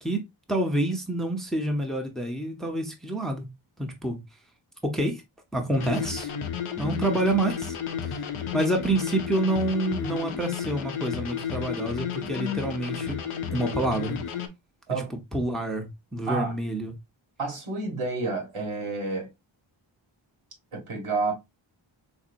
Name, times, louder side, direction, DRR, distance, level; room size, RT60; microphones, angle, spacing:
voice 1, 0.0-3.5 3.8-4.2 4.8-5.2 5.5-6.3 6.8-7.8 8.1-8.3 8.5-13.2 13.5-14.2 15.3-16.9, right 1 dB, ahead, 0.7 m, -28 dB
sound 1, 5.7-14.5, left 7 dB, 90° left, 0.6 m, -32 dB
voice 2, 17.4-19.3 20.7-21.3, right 3 dB, 85° right, 1.5 m, -29 dB
3.8 x 2.7 x 2.5 m
wide cardioid pair, 70°, 49 cm